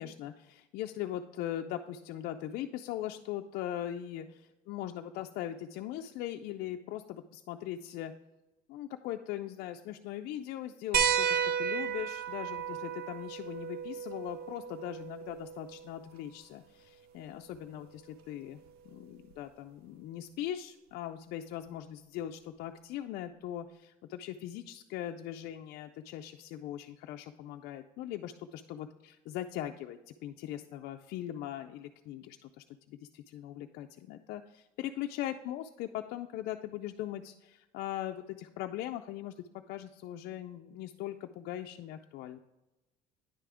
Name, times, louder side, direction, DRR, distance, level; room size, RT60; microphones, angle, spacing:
voice 1, 0.0-8.1 8.7-42.4, left 12 dB, 70° left, 4 dB, 0.4 m, -40 dB
sound 1, 10.9-16.0 17.5-17.6 19.3-19.4, right 7 dB, 70° right, 0.6 m, -33 dB
9.8 x 3.4 x 4.8 m, 1.0 s
cardioid pair, 120°, 16 cm